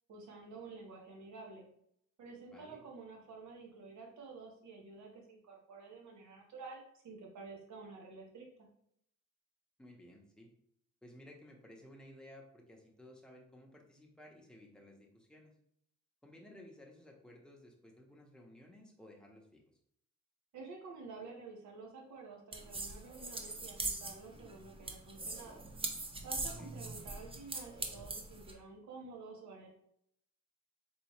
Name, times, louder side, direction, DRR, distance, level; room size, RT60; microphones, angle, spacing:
voice 1, 0.1-1.6 2.2-8.5 20.5-25.6 26.2-29.7, right 4 dB, 70° right, 0 dB, 1.2 m, -50 dB
voice 2, 2.5-2.8 9.8-10.5 11.0-15.5 16.2-19.6 26.6-26.7, left 1 dB, 5° left, -1 dB, 0.9 m, -56 dB
sound 1, 22.5-28.5, right 2 dB, 20° right, 0.6 m, -42 dB
4.1 x 3.0 x 3.1 m, 0.70 s
cardioid pair, 90°, 30 cm